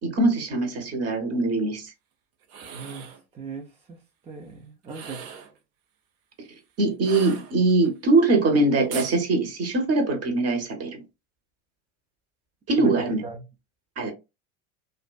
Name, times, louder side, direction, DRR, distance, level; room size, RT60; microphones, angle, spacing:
voice 1, 0.0-1.9 6.8-11.0 12.7-13.2 14.0-14.1, right 2 dB, 35° right, 0.9 m, -22 dB
sound 1, 2.4-3.2 4.8-5.6 7.0-7.9 8.9-9.2, right 7 dB, 75° right, 0.7 m, -39 dB
voice 2, 2.6-5.3 12.8-12.9 13.2-13.5, right 4 dB, 15° right, 0.4 m, -39 dB
2.4 x 2.3 x 2.3 m
hypercardioid pair, 85°, 42 cm